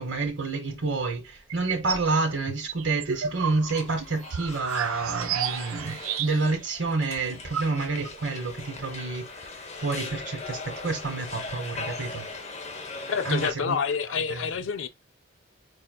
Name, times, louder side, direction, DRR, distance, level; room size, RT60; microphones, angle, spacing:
voice 1, 0.0-12.2 13.2-13.8 14.3-14.5, right 3 dB, 60° right, 1.1 m, -29 dB
sound 1, 1.5-2.1 2.5-6.6 6.9-7.0 7.2-8.1, right 8 dB, 80° right, 0.4 m, -32 dB
sound 2, 3.7-13.5, left 3 dB, 30° left, 0.8 m, -39 dB
voice 2, 13.1-14.9, left 6 dB, 60° left, 0.4 m, -28 dB
5.0 x 3.3 x 2.2 m
head